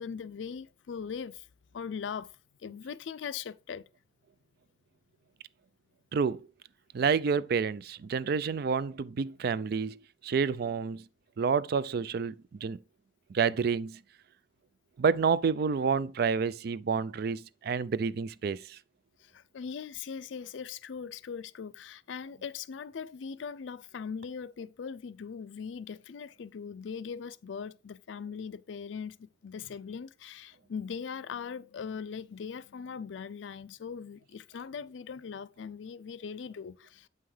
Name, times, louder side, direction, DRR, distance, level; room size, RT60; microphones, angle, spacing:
voice 1, 0.0-1.4 1.7-2.3 2.6-3.8 19.3-29.2 29.4-37.1, left 6 dB, 85° left, 0.4 m, -40 dB
voice 2, 6.1-6.4 6.9-11.0 11.4-12.4 12.6-12.8 13.3-14.0 15.0-18.8, right 5 dB, 55° right, 0.4 m, -29 dB
7.8 x 5.6 x 3.2 m
head